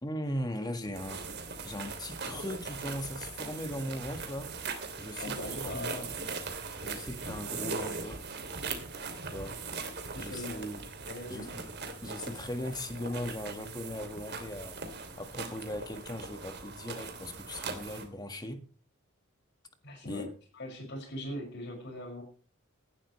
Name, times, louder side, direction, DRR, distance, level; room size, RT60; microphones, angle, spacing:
voice 1, 0.0-1.3 1.6-4.6 5.0-6.1 6.8-8.2 9.3-9.6 10.2-10.8 11.3-11.7 12.0-14.8 15.2-18.6 20.0-20.3, left 1 dB, 20° left, 1.6 m, -39 dB
sound 1, 0.9-18.1, right 4 dB, 50° right, 2.8 m, -40 dB
voice 2, 5.2-6.1 10.1-10.6 11.1-11.5 19.8-20.3 20.6-22.2, left 1 dB, 55° left, 6.1 m, -40 dB
18.0 x 11.5 x 3.2 m
head